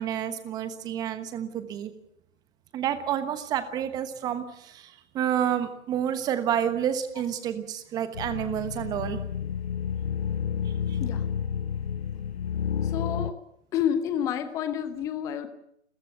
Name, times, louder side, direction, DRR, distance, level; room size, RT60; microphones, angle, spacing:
voice 1, 0.0-1.9 2.7-9.2 10.9-11.0, right 9 dB, 10° right, 11 dB, 1.1 m, -29 dB
sound 1, 8.1-13.3, left 8 dB, 50° left, 0.9 m, -30 dB
voice 2, 12.9-13.3 13.7-15.5, left 9 dB, 10° left, 11 dB, 0.8 m, -29 dB
29.5 x 14.5 x 8.1 m, 0.77 s
figure-of-eight pair, 140°, 39 cm